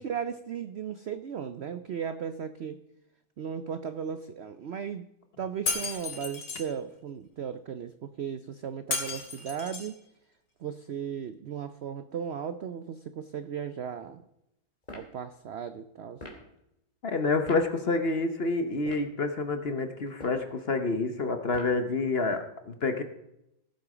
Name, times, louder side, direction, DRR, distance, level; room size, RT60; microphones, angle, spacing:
voice 1, 0.0-2.8 3.4-5.1 5.4-10.0 10.6-14.2 14.9-16.2, right 7 dB, 75° right, 11 dB, 0.6 m, -36 dB
Shatter, 5.7-6.6 8.9-10.0, left 3 dB, 75° left, 2.8 m, -33 dB
sound 1, 14.8-15.1 16.2-16.4 17.5-17.6 18.7-19.1 20.1-20.5 21.5-21.8, left 1 dB, 20° left, 2.7 m, -44 dB
voice 2, 17.0-23.0, left 3 dB, 40° left, 7 dB, 1.0 m, -28 dB
17.5 x 7.9 x 5.0 m, 0.84 s
omnidirectional pair, 1.9 m